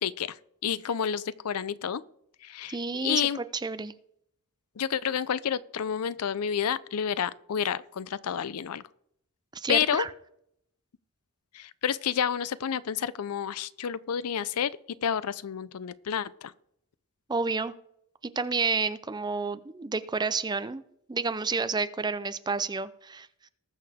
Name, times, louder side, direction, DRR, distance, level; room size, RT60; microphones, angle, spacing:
voice 1, 0.0-0.4 0.6-2.0 2.4-2.8 3.0-3.4 4.8-8.8 9.7-10.1 11.5-14.7 15.0-16.5, left 8 dB, 85° left, 0.5 m, -29 dB
voice 2, 2.7-3.9 9.5-10.1 17.3-17.7 18.2-20.8 21.1-23.3, right 4 dB, 20° right, 0.5 m, -30 dB
19.5 x 6.7 x 3.5 m
head